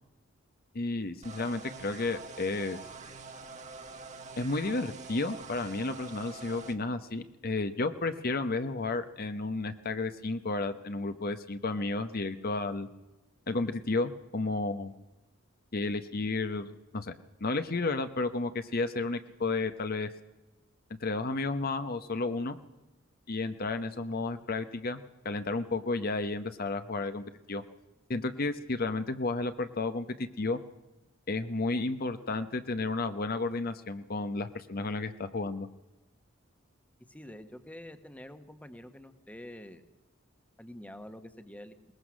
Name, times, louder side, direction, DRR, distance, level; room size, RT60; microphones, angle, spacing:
voice 1, 0.7-2.8 4.4-12.9 13.5-14.9 15.7-17.1 17.4-20.1 21.0-22.6 23.3-25.0 25.2-27.6 28.1-30.6 31.3-35.7, left 3 dB, 50° left, 9 dB, 0.8 m, -32 dB
sound 1, 1.2-6.7, right 4 dB, 35° right, 1.5 m, -45 dB
voice 2, 37.1-39.8 40.6-41.8, left 1 dB, 5° left, 9 dB, 1.1 m, -47 dB
21.5 x 19.5 x 6.3 m, 1.0 s
head